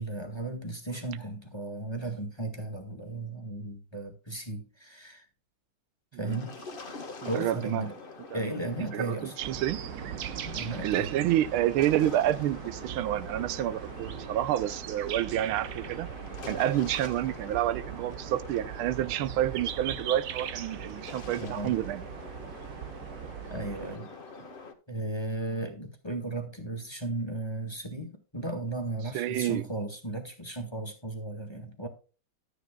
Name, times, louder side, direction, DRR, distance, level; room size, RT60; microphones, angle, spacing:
voice 1, 0.0-5.2 6.1-6.6 7.3-7.9 8.3-9.3 10.4-11.1 21.4-21.8 23.5-24.1 24.9-31.9, right 2 dB, 15° left, 1.5 m, -35 dB
sound 1, 6.3-24.7, left 3 dB, 30° left, 1.3 m, -45 dB
voice 2, 7.2-7.9 8.3-8.4 8.9-9.8 10.8-16.1 16.4-22.0 29.1-29.6, right 12 dB, 90° right, 1.5 m, -29 dB
sound 2, 9.4-24.0, right 10 dB, 60° right, 1.1 m, -40 dB
13.0 x 10.0 x 2.3 m
omnidirectional pair, 2.2 m